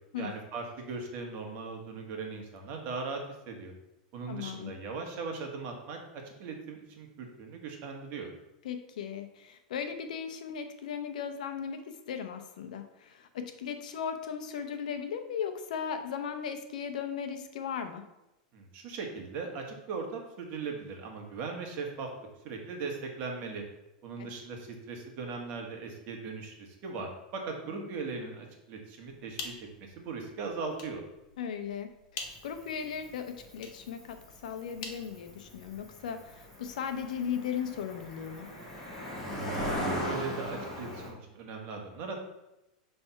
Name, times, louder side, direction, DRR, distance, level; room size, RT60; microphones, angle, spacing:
voice 1, 0.2-3.2 3.5-3.7 4.1-8.3 18.5-22.1 22.4-23.6 24.0-29.5 29.8-31.0 39.2-39.5 39.8-42.1, right 4 dB, 40° right, 2 dB, 1.4 m, -39 dB
voice 2, 4.3-4.7 8.6-18.1 24.2-24.3 27.7-27.9 31.4-38.5, left 7 dB, 80° left, 8 dB, 0.8 m, -37 dB
sound 1, 29.1-35.9, left 4 dB, 55° left, 1.2 m, -47 dB
Cricket, 32.2-41.1, equal, 10° left, 1.6 m, -38 dB
5.6 x 3.4 x 5.6 m, 0.92 s
supercardioid pair, 145°, 4 cm